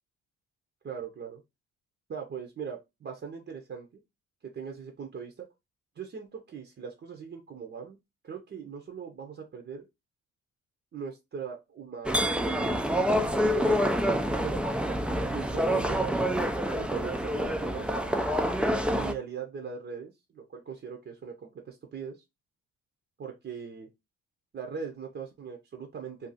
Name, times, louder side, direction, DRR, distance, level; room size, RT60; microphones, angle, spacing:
voice 1, 0.8-1.4 2.1-4.0 4.4-5.5 6.0-8.0 8.2-9.9 10.9-12.7 13.1-14.6 15.3-16.4 16.8-18.1 18.9-22.2 23.2-23.9 24.5-26.3, right 6 dB, 40° right, 3 dB, 0.7 m, -40 dB
sound 1, 12.1-19.1, equal, 5° right, 0.3 m, -27 dB
2.5 x 2.3 x 4.0 m, 0.22 s
cardioid pair, 90°, 30 cm